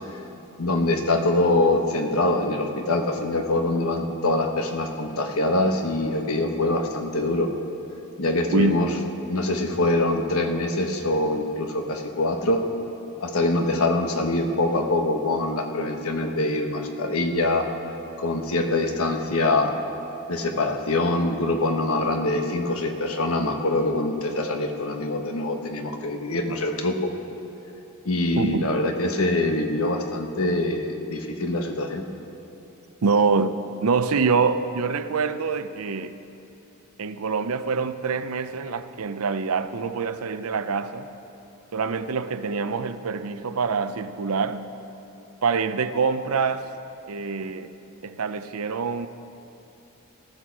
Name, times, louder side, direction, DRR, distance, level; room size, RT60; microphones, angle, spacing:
voice 1, 0.6-7.5 8.2-8.9 9.3-12.6 13.2-17.7 18.2-19.7 20.3-27.1 28.0-32.0, left 2 dB, 70° left, 1.3 m, -24 dB
voice 2, 8.5-8.9 28.4-28.6 33.0-36.2 37.0-41.1 41.7-44.7 45.4-46.7 47.1-47.7 48.0-49.1, right 4 dB, 70° right, 0.6 m, -25 dB
19.0 x 13.0 x 4.7 m
head